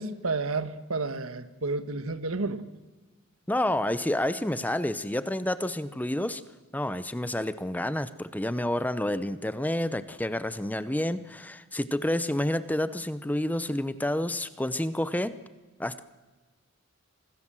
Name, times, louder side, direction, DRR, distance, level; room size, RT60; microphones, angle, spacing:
voice 1, 0.0-2.6, right 3 dB, 75° right, 11 dB, 1.5 m, -31 dB
voice 2, 3.5-6.4 6.7-15.4 15.8-16.0, left 1 dB, 10° left, 14 dB, 0.7 m, -29 dB
26.5 x 19.5 x 7.6 m, 1.2 s
head